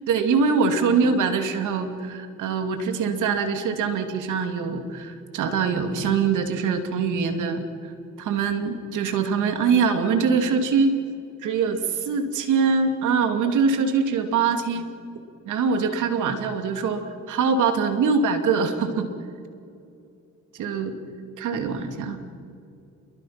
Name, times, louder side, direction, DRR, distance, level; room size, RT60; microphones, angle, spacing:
voice 1, 0.1-7.9 8.2-11.0 11.4-14.9 15.5-19.1 20.5-20.9 21.4-22.2, right 5 dB, 80° right, 6 dB, 2.7 m, -23 dB
29.0 x 23.0 x 6.0 m, 2.6 s
cardioid pair, 90°, 30 cm